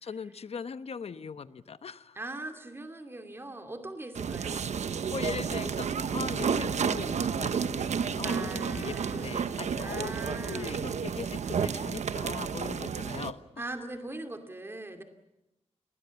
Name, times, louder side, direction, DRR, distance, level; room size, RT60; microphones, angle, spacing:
voice 1, 0.0-2.2 4.4-4.6 4.9-7.9 8.2-10.1 10.5-13.4, left 6 dB, 60° left, 13 dB, 1.1 m, -40 dB
voice 2, 2.1-4.6 8.2-9.4 9.8-10.8 13.6-15.0, right 2 dB, 20° right, 6 dB, 2.6 m, -41 dB
sound 1, 4.1-13.3, right 6 dB, 90° right, 1.1 m, -31 dB
28.0 x 21.5 x 7.1 m, 0.90 s
wide cardioid pair, 130°, 11 cm